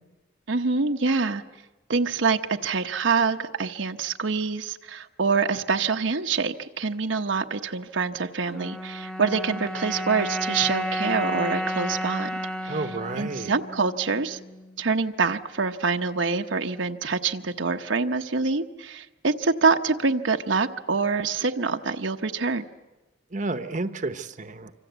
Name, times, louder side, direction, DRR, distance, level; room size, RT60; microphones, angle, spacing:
voice 1, 0.5-1.4 1.9-12.3 12.6-12.8 13.2-14.4 14.8-22.6, right 4 dB, 75° right, 5 dB, 1.0 m, -25 dB
sound 1, 8.5-14.9, equal, 5° left, 1.0 m, -32 dB
voice 2, 12.7-13.5 23.3-24.7, right 2 dB, 40° right, 9 dB, 1.0 m, -31 dB
26.0 x 25.5 x 8.1 m, 1.1 s
head